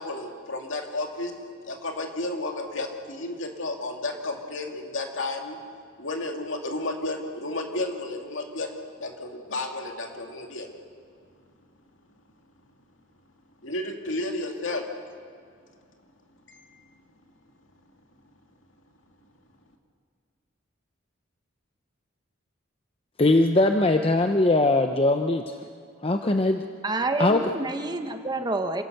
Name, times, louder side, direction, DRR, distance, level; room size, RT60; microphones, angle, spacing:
voice 1, 0.0-1.3 1.6-5.6 6.0-8.7 9.0-10.7 13.6-14.9 16.5-16.7, left 2 dB, 70° left, 2 dB, 2.4 m, -32 dB
voice 2, 23.2-25.6 26.0-26.7 27.2-27.5, left 2 dB, 30° left, 5 dB, 0.7 m, -21 dB
voice 3, 26.8-28.8, right 2 dB, 20° right, 6 dB, 1.0 m, -28 dB
27.5 x 17.5 x 6.7 m, 2.2 s
head